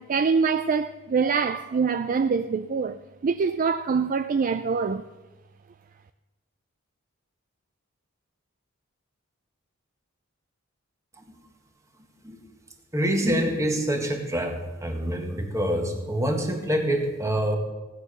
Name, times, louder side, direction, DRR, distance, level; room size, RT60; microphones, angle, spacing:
voice 1, 0.0-3.0 3.2-5.0, right 5 dB, 40° right, 0.4 m, -24 dB
voice 2, 12.9-17.6, equal, 15° right, 1.7 m, -26 dB
16.5 x 9.3 x 6.6 m
head